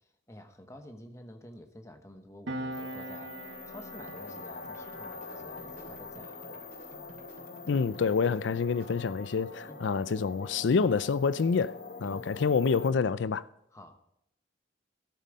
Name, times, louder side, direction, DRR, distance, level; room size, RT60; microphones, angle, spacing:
voice 1, 0.3-6.7 9.7-9.9 12.0-12.3 13.7-14.0, left 1 dB, 15° left, 1.0 m, -50 dB
Piano, 2.5-9.5 9.8-10.0, right 1 dB, 80° right, 1.4 m, -44 dB
sound 1, 2.7-12.9, left 4 dB, 50° left, 1.0 m, -44 dB
sound 2, 3.9-9.1, right 1 dB, 50° right, 2.8 m, -54 dB
voice 2, 7.7-13.4, left 5 dB, 80° left, 0.4 m, -27 dB
14.0 x 8.3 x 5.2 m
head